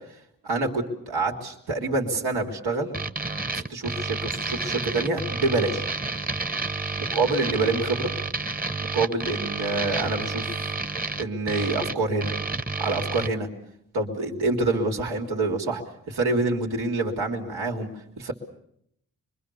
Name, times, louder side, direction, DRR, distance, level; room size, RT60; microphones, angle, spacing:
voice 1, 0.4-2.9 3.5-6.0 7.0-8.1 8.8-10.5 11.2-12.3 12.8-13.5 13.9-15.8 16.1-17.9 18.2-18.3, right 3 dB, 85° right, 1 dB, 3.3 m, -26 dB
sound 1, 2.9-13.3, right 3 dB, 25° right, 1.2 m, -30 dB
25.5 x 23.5 x 6.9 m, 0.73 s
cardioid pair, 65°, 37 cm